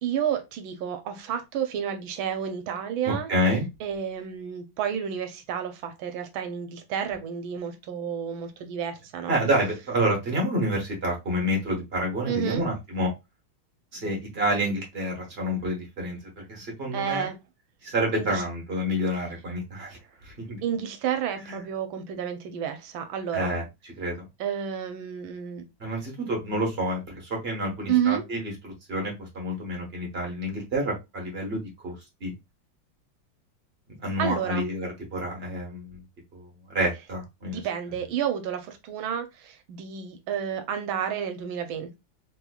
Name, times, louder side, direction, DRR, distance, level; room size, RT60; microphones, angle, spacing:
voice 1, 0.0-3.3 3.8-9.4 12.2-12.7 16.9-17.4 18.1-18.4 20.6-23.5 24.4-25.6 27.9-28.2 34.2-34.7 37.4-42.0, right 8 dB, 75° right, 1.5 m, -30 dB
voice 2, 3.0-3.6 9.3-13.1 13.9-17.3 17.8-20.0 20.2-20.6 21.4-21.6 23.3-24.2 25.8-31.9 32.2-32.3 33.9-36.0 36.3-37.6, equal, 35° right, 1.3 m, -29 dB
3.7 x 3.0 x 2.3 m
omnidirectional pair, 2.3 m